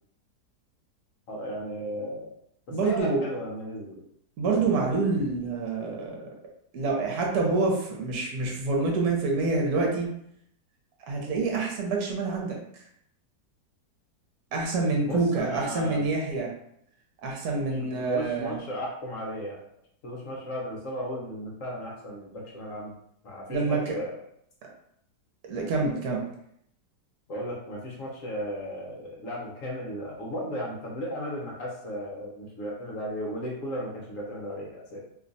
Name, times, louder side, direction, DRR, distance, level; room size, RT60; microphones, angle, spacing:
voice 1, 1.3-2.3 2.7-4.0 15.0-16.1 18.0-19.6 20.0-22.9 23.2-24.1 27.3-35.0, equal, 60° left, -3 dB, 1.0 m, -35 dB
voice 2, 2.7-3.2 4.4-6.2 6.7-10.1 11.1-12.6 14.5-16.5 17.2-18.6 23.5-24.0 25.5-26.2, right 3 dB, 65° right, -1 dB, 1.3 m, -27 dB
3.0 x 2.3 x 3.9 m, 0.72 s
omnidirectional pair, 1.8 m